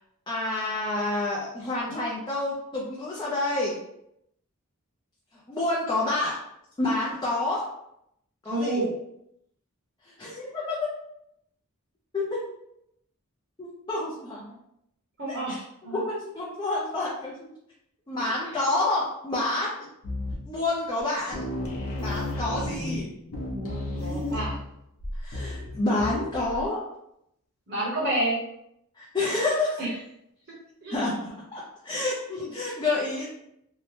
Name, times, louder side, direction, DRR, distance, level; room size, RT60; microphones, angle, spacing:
voice 1, 0.3-3.8 5.5-6.4 6.8-7.6 8.4-8.8 10.1-10.8 12.1-12.4 13.6-14.5 15.3-15.6 15.8-17.5 18.1-19.7 20.5-21.4 22.0-23.1 24.0-24.4 25.2-26.8 29.0-29.8 30.9-33.3, left 2 dB, 20° left, -6 dB, 0.4 m, -28 dB
voice 2, 8.4-8.9 15.2-16.0 18.2-18.4 23.5-24.5 27.7-28.4 29.8-29.9 30.8-31.2 32.3-32.4, right 1 dB, 50° right, -5 dB, 0.9 m, -30 dB
sound 1, 20.0-20.6 21.0-21.1 21.3-26.7, left 1 dB, 70° left, 0.7 m, -33 dB
2.7 x 2.1 x 3.1 m, 0.79 s
head